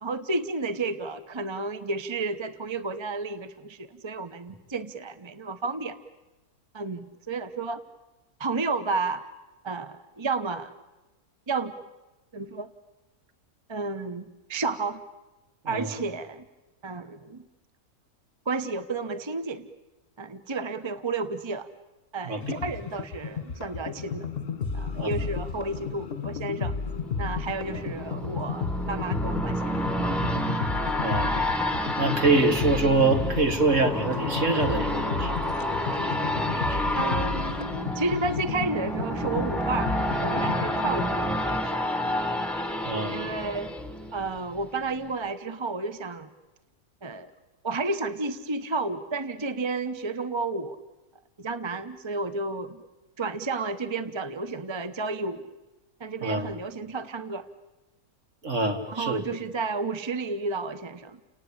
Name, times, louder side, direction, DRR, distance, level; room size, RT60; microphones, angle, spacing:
voice 1, 0.0-6.0 6.7-7.8 8.4-9.3 9.6-10.7 11.5-11.7 12.3-12.7 13.7-15.0 15.7-16.5 16.8-17.5 18.5-19.7 20.2-21.7 22.1-24.3 24.7-26.7 27.2-29.8 30.2-30.3 36.9-39.9 40.2-41.9 43.1-43.7 44.1-46.3 47.0-47.3 47.6-50.8 51.4-52.8 53.2-55.5 56.0-57.5 58.9-61.2, right 3 dB, 25° right, 12 dB, 0.8 m, -31 dB
sound 1, 22.4-41.3, left 5 dB, 40° left, 1.7 m, -33 dB
sound 2, 26.8-44.6 45.0-45.1, equal, ahead, 1.5 m, -30 dB
voice 2, 31.0-31.3 32.0-35.3 36.1-36.3 36.7-37.0 42.9-43.2 56.2-56.5 58.4-59.2, right 3 dB, 55° right, 6 dB, 2.3 m, -25 dB
30.0 x 19.0 x 8.7 m, 1.1 s
omnidirectional pair, 1.6 m